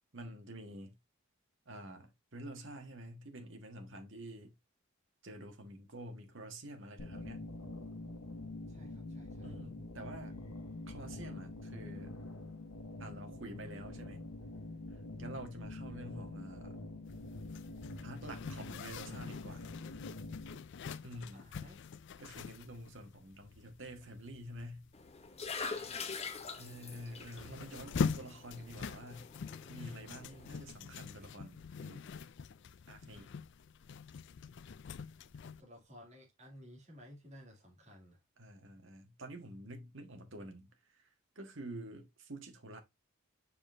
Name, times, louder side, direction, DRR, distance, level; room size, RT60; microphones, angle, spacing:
voice 1, 0.1-0.9 1.6-4.5 5.2-7.5 9.4-10.4 10.8-12.2 13.0-14.3 15.2-16.8 18.0-19.7 21.0-21.4 22.2-24.9 26.6-29.3 29.7-32.0 32.9-33.3 38.4-40.7 40.9-41.0 41.3-42.8, right 1 dB, 55° right, 1.5 m, -48 dB
sound 1, 7.0-20.5, left 2 dB, 85° left, 1.2 m, -46 dB
voice 2, 8.7-9.5 21.3-21.8 25.8-26.2 35.6-38.2, equal, 30° right, 2.6 m, -55 dB
Zipper (clothing), 17.1-35.6, left 5 dB, 50° left, 0.3 m, -44 dB
sound 2, 24.9-30.6, left 5 dB, 30° left, 0.8 m, -45 dB
6.9 x 5.3 x 2.6 m
head